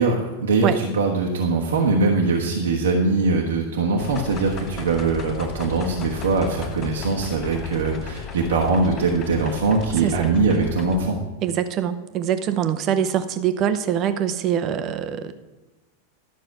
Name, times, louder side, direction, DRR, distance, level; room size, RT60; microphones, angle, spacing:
voice 1, 0.0-11.2, right 3 dB, 65° right, 0 dB, 1.2 m, -22 dB
sound 1, 4.0-11.0, left 4 dB, 30° left, 0.9 m, -35 dB
voice 2, 11.4-15.3, right 9 dB, 35° right, 11 dB, 0.8 m, -24 dB
12.0 x 6.3 x 5.8 m, 1.1 s
figure-of-eight pair, 90°, 0 cm